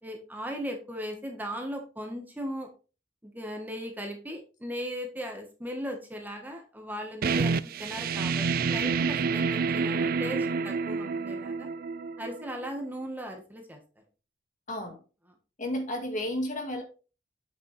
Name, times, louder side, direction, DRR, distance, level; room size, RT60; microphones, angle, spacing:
voice 1, 0.0-2.7 3.2-11.7 12.2-13.8, equal, 10° right, 3 dB, 1.4 m, -37 dB
sound 1, 7.2-12.7, right 5 dB, 55° right, 0.4 m, -28 dB
voice 2, 14.7-15.0 15.6-16.8, left 1 dB, 45° left, 3 dB, 2.1 m, -32 dB
8.3 x 6.7 x 3.4 m, 0.34 s
head